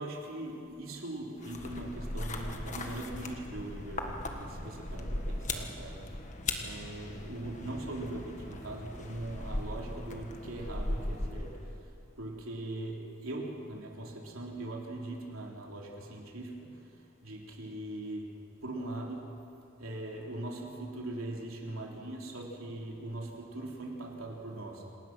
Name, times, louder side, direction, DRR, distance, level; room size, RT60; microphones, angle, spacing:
voice 1, 0.0-6.1 6.6-16.9 17.2-19.4 19.8-24.9, right 1 dB, 85° right, -1 dB, 3.5 m, -41 dB
sound 1, 1.4-11.8, left 2 dB, 35° left, 1.6 m, -38 dB
27.0 x 19.5 x 6.1 m, 2.8 s
head